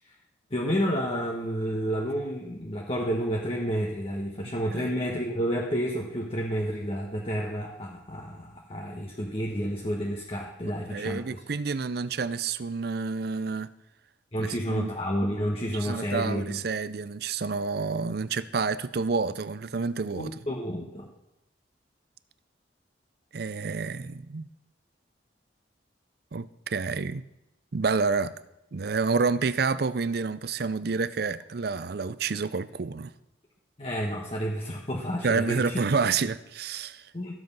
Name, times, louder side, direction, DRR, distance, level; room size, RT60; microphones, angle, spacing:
voice 1, 0.5-11.2 14.3-16.6 20.1-21.1 33.8-35.8 37.1-37.4, equal, 30° left, 1.2 m, -30 dB
voice 2, 10.6-13.7 14.4-14.9 15.7-20.3 23.3-24.5 26.3-27.2 27.7-28.3 28.7-33.1 35.2-37.1, right 4 dB, 60° right, 0.5 m, -29 dB
13.5 x 7.8 x 5.5 m
head